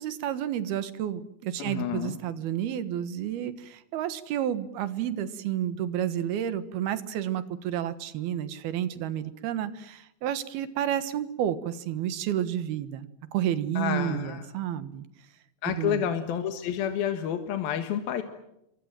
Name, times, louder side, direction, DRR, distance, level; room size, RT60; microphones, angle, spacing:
voice 1, 0.0-15.0 15.7-16.0, right 10 dB, 85° right, 12 dB, 3.4 m, -31 dB
voice 2, 1.6-2.2 13.8-14.5 15.6-18.2, left 9 dB, 75° left, 7 dB, 3.3 m, -29 dB
28.5 x 24.0 x 7.6 m, 0.82 s
omnidirectional pair, 4.3 m